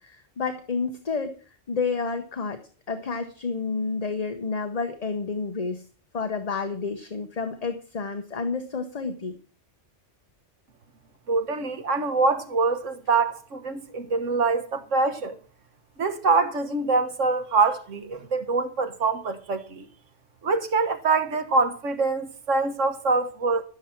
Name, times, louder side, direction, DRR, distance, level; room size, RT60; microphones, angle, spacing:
voice 1, 0.0-1.4 1.7-2.6 2.9-5.8 6.1-9.3, left 4 dB, 35° left, 1.0 m, -30 dB
voice 2, 11.3-15.4 16.0-19.9 20.4-23.6, right 3 dB, 80° right, 1.7 m, -24 dB
13.5 x 7.2 x 5.8 m
omnidirectional pair, 1.3 m